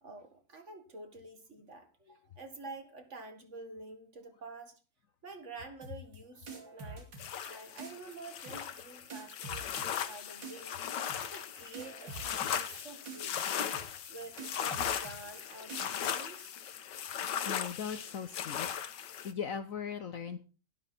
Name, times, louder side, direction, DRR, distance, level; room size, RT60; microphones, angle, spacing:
voice 1, 0.0-4.8 5.2-7.1 7.5-16.6, right 3 dB, 40° right, 7 dB, 2.1 m, -49 dB
sound 1, 5.8-6.2 6.5-7.5 7.8-8.2 8.4-8.8 9.1-10.1 10.4-10.8 11.1-11.5 11.7-12.8 13.1-13.4 13.7-14.1 14.4-15.4 15.7-16.1, right 4 dB, 90° right, 3.1 m, -46 dB
sound 2, 7.2-19.3, left 9 dB, 75° left, 1.6 m, -38 dB
voice 2, 17.4-18.7 19.0-20.5, left 7 dB, 60° left, 11 dB, 1.0 m, -39 dB
11.5 x 11.5 x 4.3 m, 0.34 s
omnidirectional pair, 1.9 m